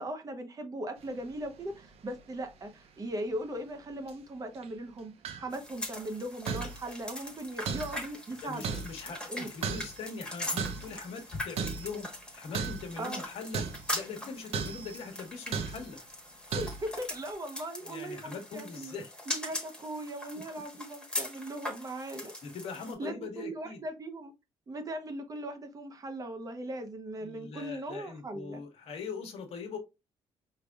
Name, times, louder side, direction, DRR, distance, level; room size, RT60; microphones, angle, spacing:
voice 1, 0.0-5.1 5.4-8.8 9.3-9.5 13.0-13.2 16.5-19.0 19.3-22.3 23.0-24.3 24.7-28.6, right 1 dB, 30° right, 0.8 m, -39 dB
sound 1, 1.3-1.9 2.1-2.2 4.1-4.2 4.5-4.7 5.2-5.5 6.5-6.9 7.7-8.1 8.6-9.1 9.6-10.1 10.6-11.0 11.6-12.0 12.5-13.0 13.5-14.0 14.5-15.1 15.5-15.9 16.5-16.9, right 6 dB, 70° right, 0.6 m, -35 dB
sound 2, 5.5-22.9, left 1 dB, 5° left, 1.2 m, -41 dB
voice 2, 8.4-12.1 12.3-16.0 17.8-19.1 22.4-23.8 27.2-29.8, left 5 dB, 70° left, 1.2 m, -41 dB
4.9 x 3.3 x 2.3 m
cardioid pair, 125°, 11 cm